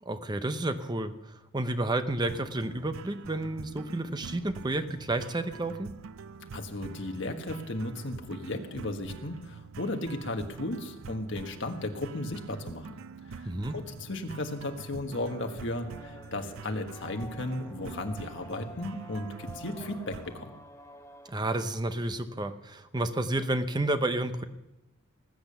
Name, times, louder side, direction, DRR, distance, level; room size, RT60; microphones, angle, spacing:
voice 1, 0.0-5.9 13.4-13.8 21.3-24.4, right 2 dB, 20° right, 10 dB, 0.7 m, -31 dB
sound 1, 2.3-20.4, right 5 dB, 80° right, 0.5 m, -45 dB
voice 2, 6.5-12.9 13.3-20.5, left 1 dB, 60° left, 5 dB, 1.5 m, -35 dB
sound 2, 15.3-21.3, left 1 dB, 15° left, 0.9 m, -49 dB
19.5 x 8.5 x 6.9 m, 0.94 s
head